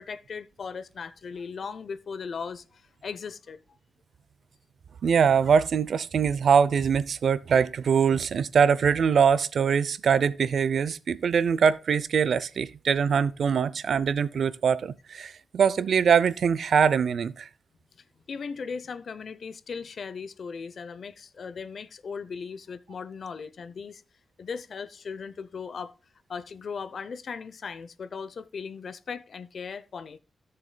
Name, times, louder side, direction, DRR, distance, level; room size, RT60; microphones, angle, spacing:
voice 1, 0.0-3.6 18.3-24.0 24.4-26.0 26.3-30.2, left 5 dB, 60° left, 0.6 m, -38 dB
voice 2, 5.0-17.5, right 7 dB, 75° right, 0.5 m, -23 dB
16.5 x 6.7 x 2.2 m
wide cardioid pair, 110°, 0 cm